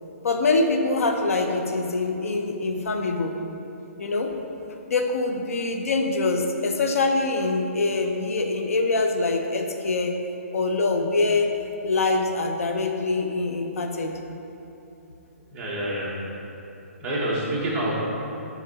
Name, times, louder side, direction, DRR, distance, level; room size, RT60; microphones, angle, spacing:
voice 1, 0.2-3.3 4.0-4.3 4.9-10.1 10.5-11.5 11.8-14.2, left 3 dB, 70° left, 4 dB, 0.6 m, -24 dB
voice 2, 15.5-16.2 17.0-18.0, right 1 dB, 15° right, -6 dB, 0.8 m, -27 dB
5.6 x 4.6 x 4.0 m, 2.9 s
hypercardioid pair, 175°, 8 cm